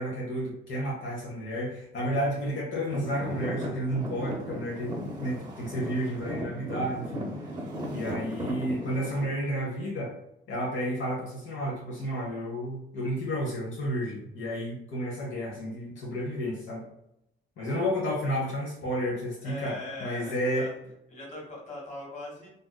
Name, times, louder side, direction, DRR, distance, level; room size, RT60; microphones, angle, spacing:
voice 1, 0.0-7.3 7.9-10.2 10.5-16.8 17.6-20.7, equal, 75° left, -3 dB, 0.9 m, -31 dB
Traffic noise roadway noise / Engine, 2.9-9.3, equal, 20° right, 0.7 m, -36 dB
voice 2, 19.4-20.7 21.1-22.5, left 1 dB, 35° left, -3 dB, 1.3 m, -40 dB
3.5 x 2.5 x 2.2 m, 0.79 s
cardioid pair, 135°, 20 cm